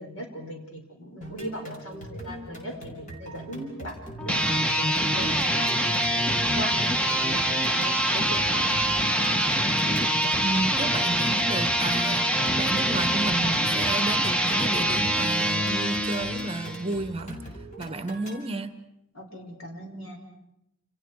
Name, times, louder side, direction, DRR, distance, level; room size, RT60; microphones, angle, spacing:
voice 1, 0.0-5.7 6.1-6.8 7.2-9.4 19.1-20.2, equal, 80° left, 2 dB, 6.0 m, -39 dB
sound 1, 1.2-18.4, right 1 dB, 35° left, 5.7 m, -41 dB
sound 2, 4.2-17.0, equal, 5° left, 1.1 m, -25 dB
voice 2, 10.4-17.4 17.8-18.8, right 2 dB, 30° right, 10 dB, 1.2 m, -32 dB
29.0 x 29.0 x 4.9 m, 0.84 s
head